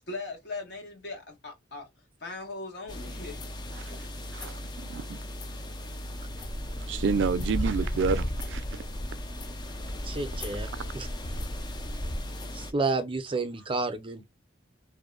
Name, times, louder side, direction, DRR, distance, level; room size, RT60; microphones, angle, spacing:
voice 1, 0.1-1.9 2.2-3.4 10.4-10.5 13.6-13.7, left 3 dB, 70° left, 1.1 m, -39 dB
sound 1, 2.9-12.7, equal, 25° left, 0.4 m, -35 dB
voice 2, 6.9-8.6 10.7-10.8, right 5 dB, 85° right, 0.3 m, -28 dB
voice 3, 10.1-10.7 10.9-11.1 12.5-14.3, right 3 dB, 30° right, 0.5 m, -30 dB
2.6 x 2.1 x 2.3 m
head